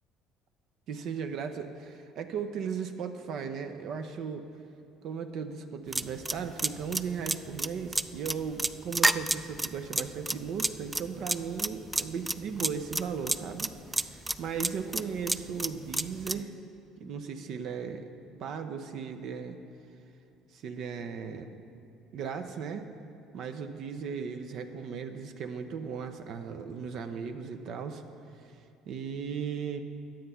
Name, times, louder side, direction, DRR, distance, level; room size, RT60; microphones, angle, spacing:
voice 1, 0.9-4.5 5.0-16.5 17.0-18.1 18.4-19.6 20.5-21.5 22.1-22.9 23.3-28.0 28.4-28.6 28.9-29.8, right 6 dB, 60° right, 7 dB, 0.6 m, -36 dB
sound 1, 5.9-16.4, right 2 dB, 10° right, 0.3 m, -29 dB
10.5 x 7.8 x 5.6 m, 2.8 s
supercardioid pair, 95°, 0 cm